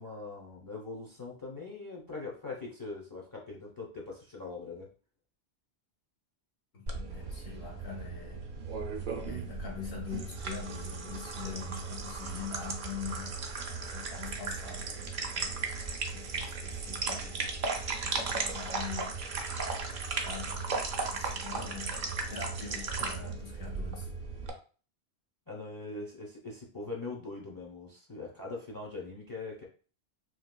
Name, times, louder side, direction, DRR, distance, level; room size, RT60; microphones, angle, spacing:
voice 1, 0.0-4.9 21.5-21.8 25.5-29.7, left 3 dB, 25° left, -2 dB, 0.5 m, -42 dB
voice 2, 6.7-8.5 9.2-13.4 13.9-15.7 16.1-17.5 18.0-19.3 20.2-24.1, left 7 dB, 80° left, -2 dB, 1.3 m, -44 dB
sound 1, 6.9-24.5, right 4 dB, 60° right, 0.6 m, -36 dB
3.0 x 2.8 x 2.2 m, 0.38 s
omnidirectional pair, 1.1 m